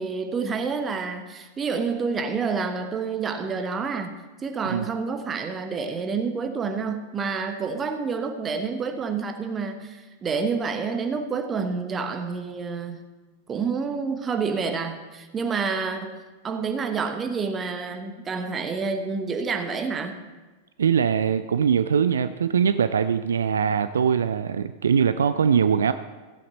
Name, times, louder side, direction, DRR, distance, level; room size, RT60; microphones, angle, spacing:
voice 1, 0.0-13.1 13.5-20.2, right 5 dB, 20° right, 7 dB, 1.1 m, -28 dB
voice 2, 20.8-25.9, right 7 dB, 70° right, 12 dB, 0.4 m, -22 dB
15.5 x 8.4 x 4.1 m, 1.3 s
figure-of-eight pair, 90°, 0 cm